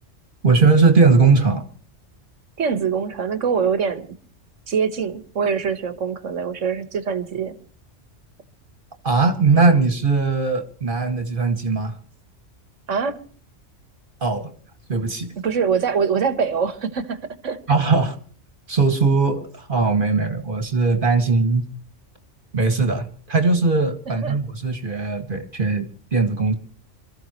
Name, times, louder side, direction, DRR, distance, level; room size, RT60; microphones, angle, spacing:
voice 1, 0.4-1.6 9.0-12.0 14.2-14.5 14.9-15.3 17.7-18.2 18.7-21.6 22.5-26.5, right 4 dB, 45° right, 2.2 m, -19 dB
voice 2, 2.6-4.1 4.7-7.6 12.9-13.2 15.4-17.6 24.2-24.4, right 6 dB, 85° right, 1.8 m, -23 dB
27.5 x 14.5 x 3.1 m
omnidirectional pair, 1.2 m